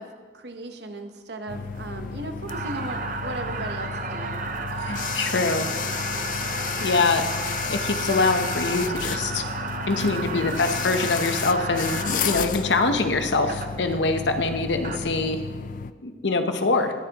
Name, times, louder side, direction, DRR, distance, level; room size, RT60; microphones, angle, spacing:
voice 1, 0.0-4.5, right 2 dB, 75° right, 6 dB, 1.0 m, -36 dB
sound 1, 1.5-15.9, left 7 dB, 45° left, 0.3 m, -32 dB
sound 2, 2.5-12.4 13.5-13.7 14.6-15.0, right 4 dB, 45° right, 0.7 m, -33 dB
voice 2, 4.8-5.7 6.8-7.2 7.6-9.4 9.9-15.4 16.0-16.9, left 3 dB, 90° left, 7 dB, 0.8 m, -24 dB
20.0 x 7.1 x 3.0 m, 1.5 s
head